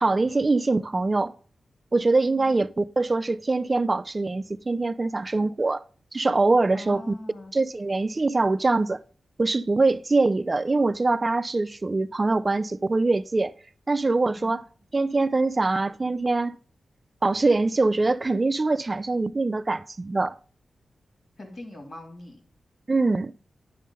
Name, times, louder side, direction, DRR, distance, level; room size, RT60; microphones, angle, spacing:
voice 1, 0.0-1.4 1.9-5.8 6.1-7.1 7.5-9.0 9.4-13.5 13.9-14.6 14.9-16.5 17.2-20.3 22.9-23.3, right 3 dB, 30° right, 0.3 m, -23 dB
voice 2, 6.7-7.5 14.2-14.6 21.4-22.5, left 2 dB, 55° left, 2.7 m, -42 dB
10.0 x 3.7 x 5.4 m
cardioid pair, 80°, 0 cm